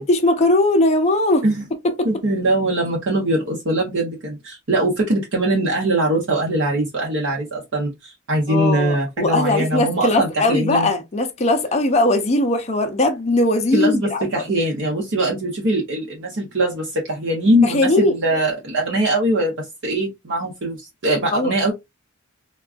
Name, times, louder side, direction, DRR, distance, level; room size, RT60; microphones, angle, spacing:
voice 1, 0.0-1.4 1.8-2.1 8.5-14.4 17.6-18.1 21.3-21.5, left 2 dB, 30° left, 0.5 m, -19 dB
voice 2, 2.0-10.9 13.7-19.5 19.8-21.7, right 1 dB, 60° right, 0.8 m, -21 dB
3.6 x 2.3 x 2.4 m
head